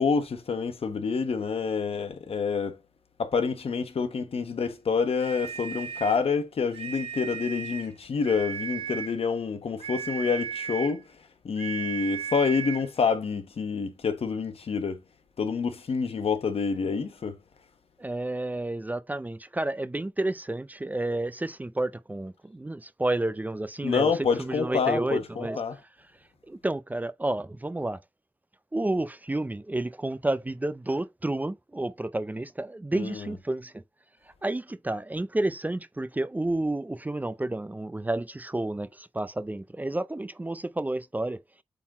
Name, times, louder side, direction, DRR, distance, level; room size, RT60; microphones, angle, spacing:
voice 1, 0.0-2.8 3.2-11.1 11.4-15.0 15.4-17.4 23.8-25.8 32.9-33.3, left 5 dB, 85° left, 1.1 m, -27 dB
sound 1, 5.2-6.3 6.7-7.9 8.2-9.2 9.8-11.0 11.6-12.9, right 7 dB, 90° right, 1.6 m, -36 dB
voice 2, 18.0-25.6 26.5-28.0 28.7-33.8 34.4-41.4, right 2 dB, 15° right, 0.4 m, -30 dB
8.5 x 3.9 x 2.9 m
wide cardioid pair, 100°, 10 cm